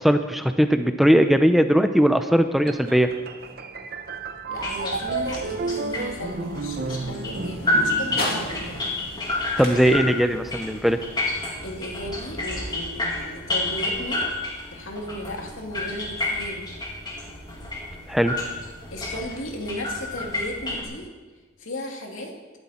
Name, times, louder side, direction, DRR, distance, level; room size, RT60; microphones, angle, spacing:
voice 1, 0.0-3.1 9.6-11.0 18.1-18.3, equal, ahead, 7 dB, 0.6 m, -19 dB
sound 1, 2.7-9.4, right 3 dB, 50° right, 0.9 m, -32 dB
voice 2, 4.5-9.0 11.6-14.3 14.7-16.8 18.9-21.1 21.6-22.3, left 1 dB, 85° left, 1 dB, 2.6 m, -35 dB
sound 2, 4.6-20.8, left 2 dB, 20° left, 2.1 m, -30 dB
sound 3, 5.3-13.4, left 2 dB, 45° left, 2.9 m, -39 dB
19.0 x 12.0 x 4.3 m, 1.4 s
head